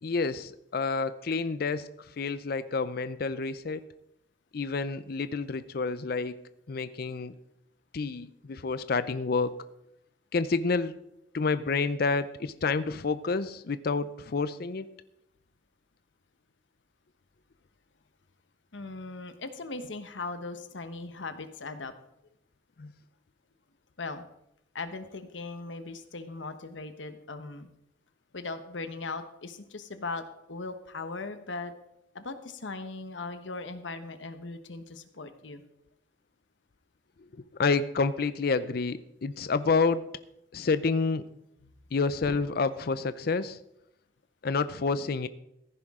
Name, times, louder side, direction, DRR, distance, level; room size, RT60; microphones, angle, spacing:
voice 1, 0.0-1.9 2.2-3.8 4.5-6.3 6.7-7.3 7.9-9.5 10.3-10.9 11.3-14.9 22.8-22.9 37.6-40.1 40.5-41.2 41.9-43.6 44.4-45.3, left 4 dB, 55° left, 14 dB, 0.5 m, -29 dB
voice 2, 18.7-21.9 24.0-24.2 24.7-27.7 28.3-30.2 30.5-31.7 32.1-35.6 41.6-41.7, left 3 dB, 90° left, 10 dB, 1.1 m, -39 dB
15.0 x 10.5 x 3.7 m, 0.82 s
head